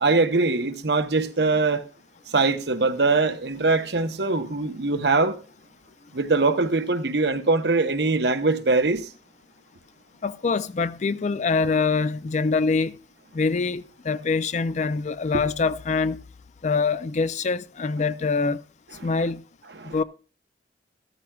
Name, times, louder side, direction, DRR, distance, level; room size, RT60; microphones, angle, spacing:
voice 1, 0.0-1.8 2.3-5.4 6.1-9.1 15.3-15.4 19.0-19.3 19.7-20.0, right 3 dB, 65° right, 1.0 m, -22 dB
voice 2, 10.2-13.0 13.3-16.2 16.6-18.6 19.0-19.4 19.8-20.0, left 4 dB, 40° left, 0.4 m, -24 dB
13.5 x 13.0 x 2.4 m
head